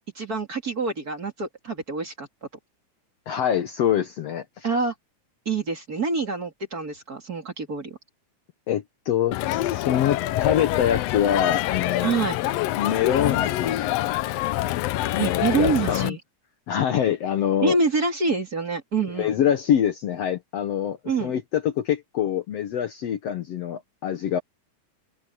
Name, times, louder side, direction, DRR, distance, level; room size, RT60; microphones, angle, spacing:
voice 1, 0.1-2.3 4.6-4.9 5.5-8.0 12.0-12.4 15.2-16.2 17.6-19.3 21.0-21.3, right 4 dB, 30° right, 2.8 m, -26 dB
voice 2, 3.3-4.7 8.7-12.1 12.8-13.8 15.1-16.2 16.7-17.8 19.2-24.4, left 9 dB, 60° left, 1.9 m, -25 dB
Crowd, 9.3-16.1, left 15 dB, 90° left, 1.4 m, -26 dB
omnidirectional pair, 3.6 m